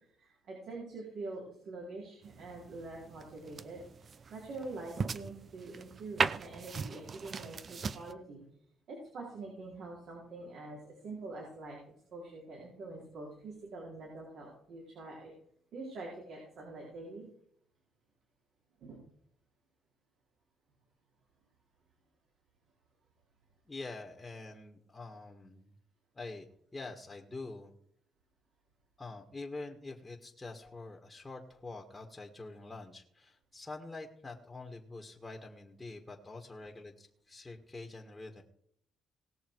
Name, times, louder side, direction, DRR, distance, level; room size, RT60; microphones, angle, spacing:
voice 1, 0.2-8.4 8.9-11.8 12.1-15.3 15.7-17.3 18.8-19.0, right 3 dB, 70° right, -3 dB, 4.1 m, -45 dB
sound 1, 2.2-8.1, right 5 dB, 45° right, 0.7 m, -38 dB
voice 2, 23.6-25.7 26.1-27.7 29.0-38.4, left 3 dB, 15° left, 1 dB, 1.8 m, -46 dB
18.5 x 6.7 x 4.7 m, 0.67 s
cardioid pair, 90°, 0 cm